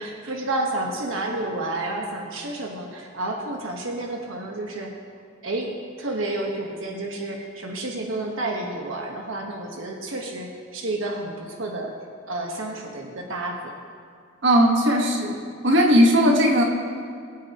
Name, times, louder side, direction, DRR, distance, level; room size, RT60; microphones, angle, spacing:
voice 1, 0.0-4.9 5.4-5.7 6.0-11.9 12.3-13.7, right 2 dB, 90° right, 0 dB, 1.3 m, -30 dB
voice 2, 14.4-15.4 15.6-16.6, equal, 65° right, 1 dB, 1.5 m, -17 dB
21.5 x 8.7 x 3.0 m, 2.3 s
head